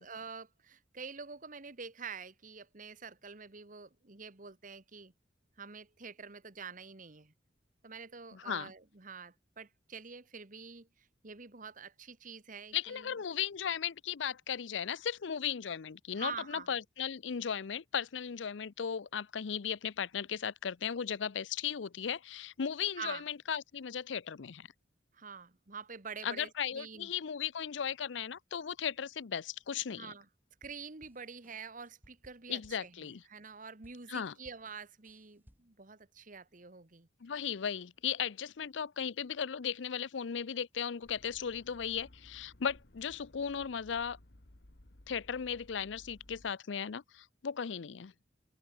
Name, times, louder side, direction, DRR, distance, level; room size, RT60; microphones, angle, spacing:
voice 1, 0.0-5.1 5.6-7.3 7.8-13.1 16.1-16.7 23.0-23.2 25.1-27.1 29.9-30.3 30.6-37.1, right 5 dB, 45° right, 1.5 m, -47 dB
voice 2, 8.3-8.7 12.7-24.7 26.2-30.1 32.5-33.2 34.1-34.3 37.2-44.2 45.1-48.1, left 7 dB, 85° left, 0.6 m, -36 dB
sound 1, 30.5-33.5 33.8-35.8, equal, 10° right, 3.8 m, -64 dB
sound 2, 41.0-46.5, left 1 dB, 65° left, 1.9 m, -59 dB
open air
head